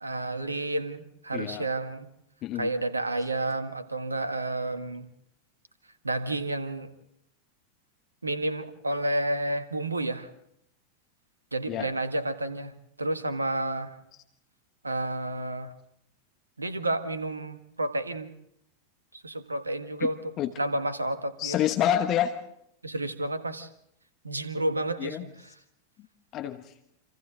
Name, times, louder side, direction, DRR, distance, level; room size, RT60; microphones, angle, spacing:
voice 1, 0.0-2.1 2.6-5.1 6.0-6.9 8.2-10.3 11.5-12.7 13.0-13.9 14.8-15.7 16.6-18.3 19.2-20.2 20.6-21.6 22.8-23.7 24.2-25.5, right 2 dB, 80° right, 11 dB, 1.5 m, -30 dB
voice 2, 1.3-1.7 2.4-2.7 11.7-11.9 20.0-20.1 20.4-20.5 21.4-22.3 25.0-25.2 26.3-26.7, left 11 dB, 35° left, 8 dB, 1.2 m, -28 dB
28.0 x 27.0 x 3.8 m, 0.75 s
figure-of-eight pair, 90°, 0 cm